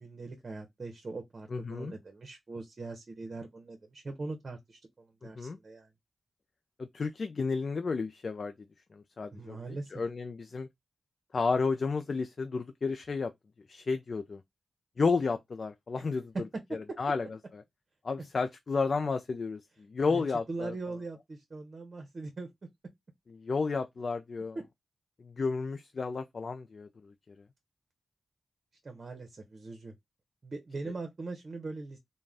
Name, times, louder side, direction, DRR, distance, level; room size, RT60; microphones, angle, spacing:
voice 1, 0.0-5.9 9.3-10.0 16.9-17.0 20.1-22.5 24.5-24.6 28.8-29.9 30.4-32.0, right 3 dB, 50° right, 0.8 m, -41 dB
voice 2, 1.5-1.9 5.2-5.6 6.8-8.5 8.9-10.7 11.3-13.3 13.7-14.4 15.0-16.3 16.7-17.3 17.5-17.6 18.0-20.7 23.3-24.6 25.2-27.4, left 4 dB, 60° left, 0.3 m, -32 dB
2.4 x 2.2 x 3.3 m
cardioid pair, 60°, 0 cm